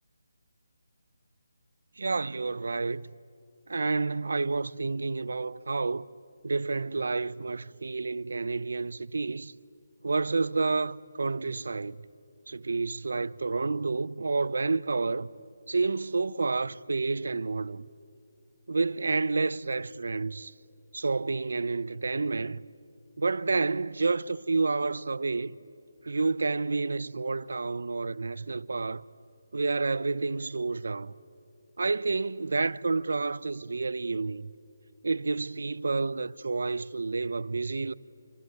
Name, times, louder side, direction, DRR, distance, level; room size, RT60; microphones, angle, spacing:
voice 1, 2.0-3.1 3.7-6.1 6.4-9.5 10.0-12.0 12.5-15.3 15.7-17.8 18.7-20.5 20.9-22.6 23.2-25.6 26.0-29.0 29.5-31.1 31.8-34.5 35.0-37.9, right 3 dB, 65° right, 0.6 m, -29 dB
27.0 x 22.0 x 9.4 m
hypercardioid pair, 180°, 0 cm